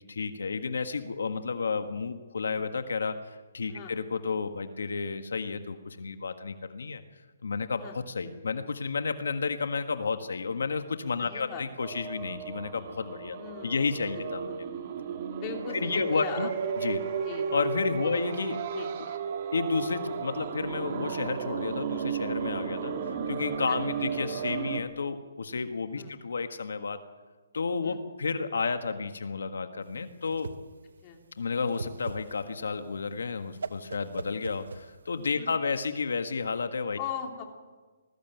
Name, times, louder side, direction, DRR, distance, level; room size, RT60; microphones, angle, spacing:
voice 1, 0.1-7.0 7.4-13.4 13.6-14.5 15.7-16.5 16.8-17.0 17.5-18.6 19.5-27.0 27.5-30.5 31.4-37.0, left 4 dB, 85° left, 8 dB, 1.6 m, -31 dB
voice 2, 11.2-11.6 13.2-14.6 15.3-16.5 17.2-17.5 18.0-18.2 18.7-18.9 23.6-23.8 26.0-26.1 27.8-28.0 31.0-31.2 35.3-35.5 37.0-37.4, left 8 dB, 25° left, 2 dB, 3.2 m, -40 dB
sound 1, 11.8-24.8, right 6 dB, 35° right, 1.9 m, -34 dB
Whoosh swoosh swish, 29.9-35.4, right 4 dB, 90° right, 1.2 m, -41 dB
20.5 x 14.5 x 9.3 m, 1.3 s
hypercardioid pair, 165°, 0 cm